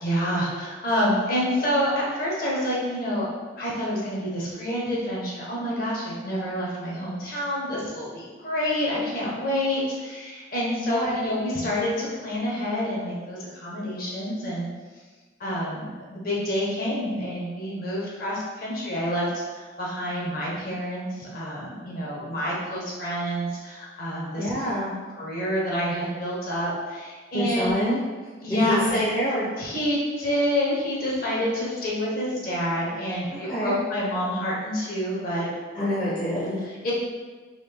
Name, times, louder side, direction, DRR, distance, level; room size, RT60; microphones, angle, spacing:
voice 1, 0.0-3.3 3.6-14.7 15.4-19.3 19.5-24.7 25.2-27.8 28.4-29.0 29.6-35.5 36.6-36.9, equal, 45° left, -5 dB, 1.0 m, -28 dB
voice 2, 24.4-25.0 27.3-28.0 28.5-29.5 33.3-33.7 35.7-36.6, equal, 25° left, -9 dB, 0.6 m, -26 dB
4.0 x 2.6 x 3.4 m, 1.4 s
head